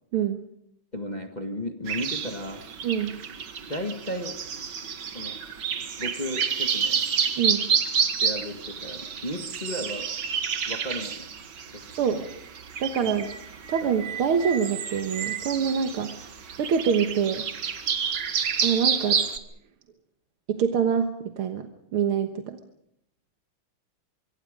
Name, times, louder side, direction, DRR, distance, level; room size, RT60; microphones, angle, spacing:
voice 1, 0.9-2.6 3.6-4.4 5.1-5.4 6.0-7.0 8.2-10.1 10.7-11.3 11.7-12.3 13.0-13.2 13.8-13.9, equal, 20° left, 4 dB, 1.7 m, -34 dB
sound 1, 1.9-19.4, right 6 dB, 55° right, 2.0 m, -29 dB
voice 2, 2.8-3.2 7.4-7.7 12.0-12.2 12.8-13.3 13.7-16.1 16.6-17.5 18.6-19.2 20.5-22.6, right 7 dB, 75° right, 6 dB, 2.2 m, -25 dB
25.0 x 23.5 x 5.2 m, 0.75 s
omnidirectional pair, 2.4 m